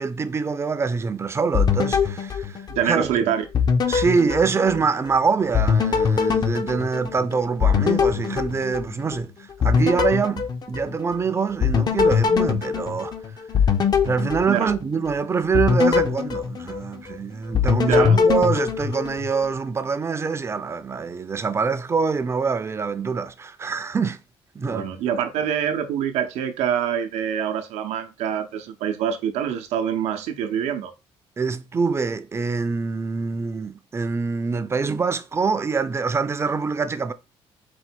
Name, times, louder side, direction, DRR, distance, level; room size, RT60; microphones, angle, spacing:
voice 1, 0.0-3.3 3.9-13.1 14.0-24.2 24.5-24.9 31.4-37.1, right 5 dB, 25° right, 0.4 m, -25 dB
sound 1, 1.5-3.2 3.5-5.2 5.5-9.2 9.6-11.2 11.6-15.1 15.5-17.2 17.5-19.5, left 6 dB, 40° left, 0.5 m, -22 dB
voice 2, 2.7-3.4 14.5-14.7 17.9-18.2 24.7-30.9, right 9 dB, 90° right, 0.6 m, -25 dB
4.3 x 2.2 x 4.3 m
cardioid pair, 115°, 11 cm